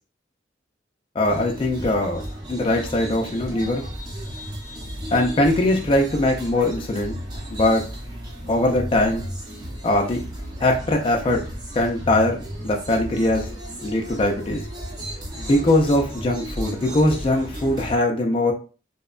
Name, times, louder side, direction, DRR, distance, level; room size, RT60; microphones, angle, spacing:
voice 1, 1.2-2.2 2.5-3.9 5.1-7.2 7.5-7.8 8.5-9.2 9.8-10.2 10.6-11.4 11.7-12.4 12.6-13.5 13.8-14.6 15.4-18.5, left 1 dB, 30° left, 1 dB, 0.4 m, -21 dB
sound 1, 1.2-18.0, equal, 20° right, 0.7 m, -34 dB
2.7 x 2.1 x 2.4 m, 0.35 s
head